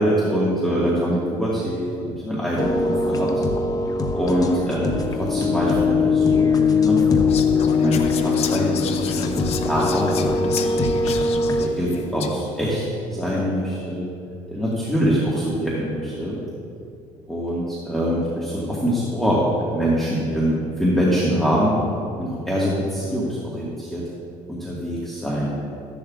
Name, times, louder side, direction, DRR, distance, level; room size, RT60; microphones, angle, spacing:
voice 1, 0.0-3.3 4.1-7.2 7.8-11.0 11.6-14.1 14.5-16.4 17.3-21.7 22.2-24.0 24.5-25.5, equal, ahead, -7 dB, 1.6 m, -24 dB
sound 1, 2.6-11.6, left 4 dB, 30° left, 0.9 m, -21 dB
Whispering, 7.3-12.6, left 8 dB, 55° left, 0.7 m, -33 dB
14.5 x 11.0 x 2.4 m, 2.5 s
cardioid pair, 120°, 13 cm